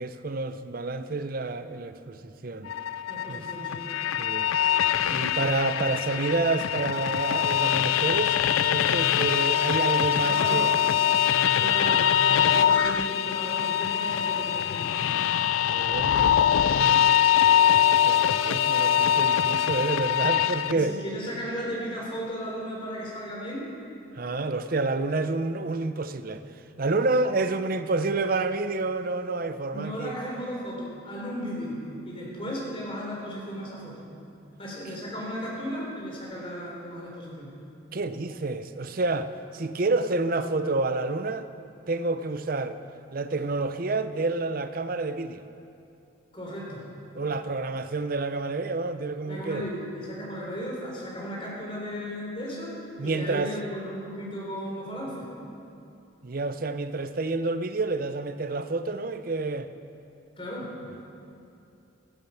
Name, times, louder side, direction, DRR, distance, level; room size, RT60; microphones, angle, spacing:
voice 1, 0.0-2.7 3.3-3.7 4.2-4.5 5.0-10.7 11.5-11.8 15.6-16.4 16.7-17.0 18.0-21.0 24.1-26.4 26.8-30.2 37.9-41.5 41.9-42.8 43.1-45.5 47.1-49.6 53.0-53.5 56.2-59.7, right 3 dB, 45° right, 10 dB, 0.6 m, -29 dB
sound 1, 2.7-20.7, left 9 dB, 80° left, 0.4 m, -23 dB
voice 2, 3.1-3.9 10.2-11.0 11.6-14.9 20.7-23.7 29.7-31.8 32.1-34.1 34.6-37.5 46.3-46.8 49.3-52.8 53.0-55.3 60.4-60.7, equal, 25° left, -3 dB, 3.5 m, -35 dB
14.5 x 13.0 x 5.7 m, 2.7 s
head